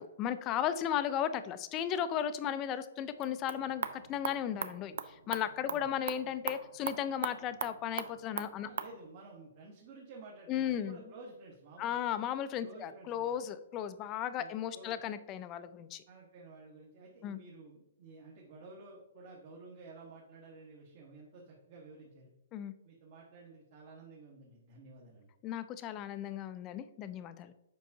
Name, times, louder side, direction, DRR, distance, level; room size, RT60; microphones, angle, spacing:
voice 1, 0.0-8.7 10.5-11.0 11.8-16.0 17.2-17.4 22.5-22.7 25.4-27.5, left 10 dB, 20° left, 12 dB, 0.3 m, -35 dB
sound 1, 3.1-9.0, right 7 dB, 70° right, 0.5 m, -41 dB
voice 2, 8.6-12.1 12.6-13.3 14.4-15.0 16.1-22.3 22.8-25.3, right 3 dB, 40° right, -3 dB, 1.2 m, -52 dB
7.4 x 5.4 x 2.7 m, 0.94 s
hypercardioid pair, 165°, 0 cm